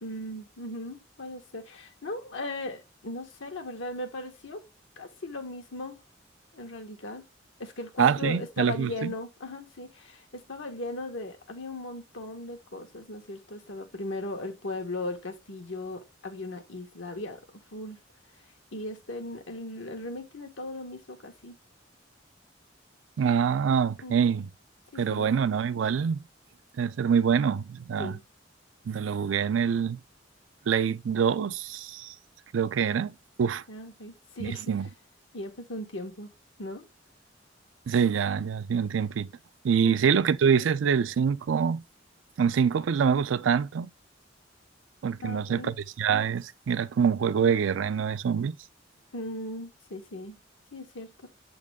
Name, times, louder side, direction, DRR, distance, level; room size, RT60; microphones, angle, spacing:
voice 1, 0.0-4.6 5.0-6.0 6.5-7.2 7.6-17.4 17.7-18.0 18.7-21.6 24.0-24.3 24.9-25.3 28.0-28.2 33.7-34.6 35.3-36.3 36.6-36.8 39.8-40.0 45.2-45.7 49.1-50.4 50.7-51.3, left 2 dB, 90° left, 1.5 m, -38 dB
voice 2, 8.0-9.1 23.2-24.5 25.0-26.2 26.8-28.2 28.9-30.0 30.7-32.1 32.5-33.6 34.4-34.9 37.9-39.3 39.6-41.8 42.4-43.9 45.0-48.6, right 7 dB, 85° right, 0.4 m, -25 dB
7.4 x 3.9 x 3.5 m
head